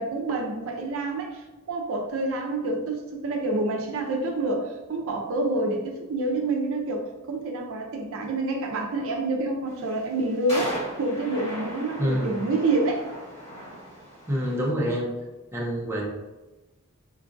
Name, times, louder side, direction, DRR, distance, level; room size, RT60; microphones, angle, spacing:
voice 1, 0.0-13.1, right 2 dB, 65° right, 1 dB, 0.5 m, -28 dB
sound 1, 9.7-14.7, equal, 30° left, 1.3 m, -37 dB
voice 2, 12.0-12.4 14.3-15.1 15.5-16.1, equal, 10° right, -3 dB, 0.5 m, -26 dB
3.8 x 2.3 x 2.5 m, 1.1 s
head